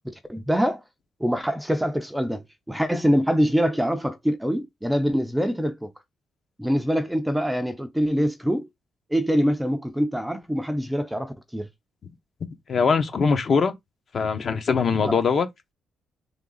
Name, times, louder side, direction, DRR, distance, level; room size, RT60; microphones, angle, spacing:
voice 1, 0.0-0.8 1.2-5.9 6.6-8.7 9.1-11.7 15.0-15.2, equal, 5° right, 0.5 m, -24 dB
voice 2, 12.7-13.7 14.1-15.5, left 5 dB, 45° left, 0.9 m, -21 dB
3.6 x 3.4 x 3.8 m
cardioid pair, 125°, 0 cm